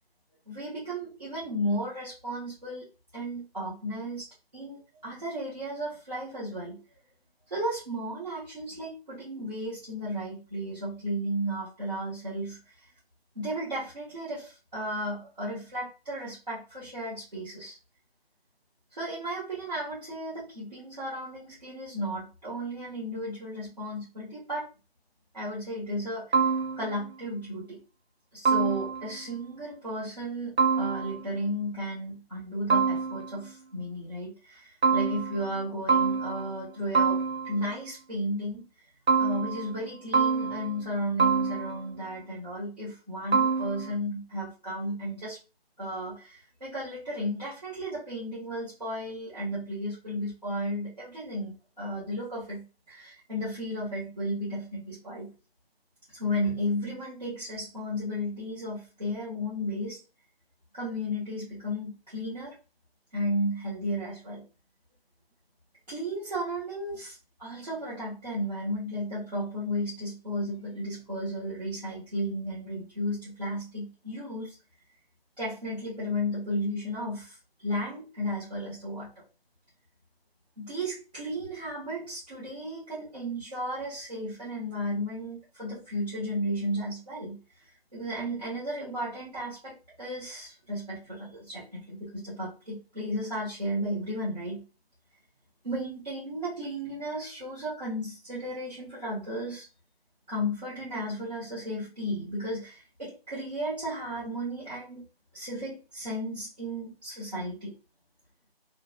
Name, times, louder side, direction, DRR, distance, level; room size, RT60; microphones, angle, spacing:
voice 1, 0.5-6.8 7.5-12.6 13.3-17.8 18.9-24.7 25.3-26.4 26.8-27.8 28.3-38.7 39.2-45.4 45.8-55.3 56.1-60.0 60.7-62.6 63.1-64.4 65.9-74.6 75.4-79.2 80.6-87.4 87.9-94.6 95.6-99.7 100.3-105.0 105.3-107.8, equal, 40° right, -9 dB, 1.1 m, -34 dB
sound 1, 26.3-27.1 28.5-29.2 30.6-31.4 32.7-33.5 34.8-35.6 35.9-36.7 36.9-37.7 39.1-39.9 40.1-40.9 41.2-42.0 43.3-43.9, right 5 dB, 90° right, 1.0 m, -26 dB
3.3 x 2.0 x 2.3 m, 0.30 s
figure-of-eight pair, 175°, 31 cm